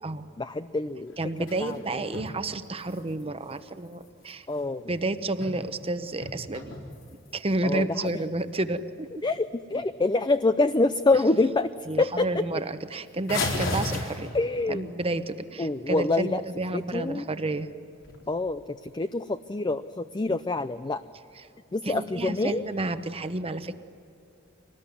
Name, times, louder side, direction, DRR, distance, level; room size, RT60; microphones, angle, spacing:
voice 1, 0.4-1.1 1.6-2.0 4.5-4.8 7.6-7.9 9.2-11.7 12.0-12.3 14.3-14.9 15.6-16.4 16.7-17.2 18.3-21.0 21.7-22.6, left 2 dB, 20° left, 11 dB, 0.5 m, -26 dB
sound 1, 1.1-2.4 2.6-4.6 5.2-5.8 6.1-7.5 8.1-8.2 8.6-8.8 9.2-9.4 9.6-10.1 10.5-11.0 11.3-11.4 11.7-11.8 12.1-12.2 13.3-14.7 17.9-18.6, left 2 dB, 70° left, 4.3 m, -35 dB
voice 2, 1.2-4.5 4.9-6.7 7.3-9.1 11.9-14.3 14.7-17.7 21.4-21.5 21.8-23.7, right 2 dB, 30° right, 10 dB, 1.0 m, -30 dB
24.5 x 19.5 x 9.7 m, 2.6 s
head